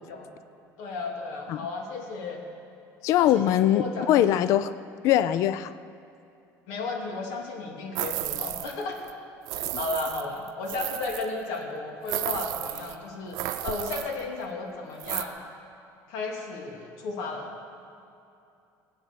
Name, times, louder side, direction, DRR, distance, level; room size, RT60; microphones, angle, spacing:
voice 1, 0.8-2.4 3.2-4.3 6.7-9.0 9.8-15.4 16.1-17.5, left 3 dB, 80° left, 1 dB, 2.7 m, -34 dB
voice 2, 3.0-4.7 5.0-5.7 9.6-9.7, left 12 dB, 55° left, 14 dB, 0.4 m, -22 dB
sound 1, 8.0-8.8 9.1-9.2 9.5-11.3 12.1-13.0 13.3-14.2 15.0-15.2, right 15 dB, 65° right, 0.7 m, -33 dB
19.0 x 8.6 x 6.9 m, 2.7 s
cardioid pair, 165°, 6 cm